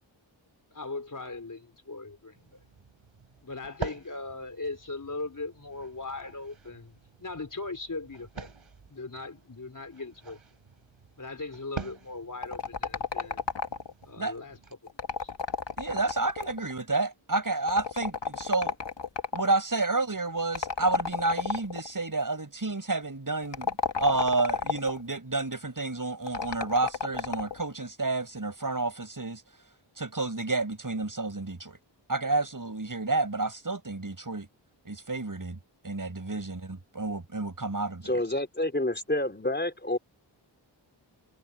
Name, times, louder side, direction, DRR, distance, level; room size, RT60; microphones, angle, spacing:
voice 1, 0.7-2.6 3.4-8.5 8.9-10.4 11.2-13.4 14.0-14.9 15.2-15.3, left 3 dB, 40° left, 4.1 m, -39 dB
sound 1, 2.4-14.7, right 5 dB, 85° right, 4.5 m, -46 dB
sound 2, 12.4-14.0 14.9-16.7 17.7-19.5 20.5-21.9 23.4-25.0 26.3-27.6, left 5 dB, 65° left, 1.6 m, -32 dB
voice 2, 15.8-18.7 19.3-23.7 24.0-29.4 30.0-31.8 32.1-34.5 34.8-35.6 35.8-38.1, right 3 dB, 45° right, 6.7 m, -30 dB
voice 3, 38.0-40.0, left 1 dB, 20° left, 4.1 m, -28 dB
wide cardioid pair, 60°, 47 cm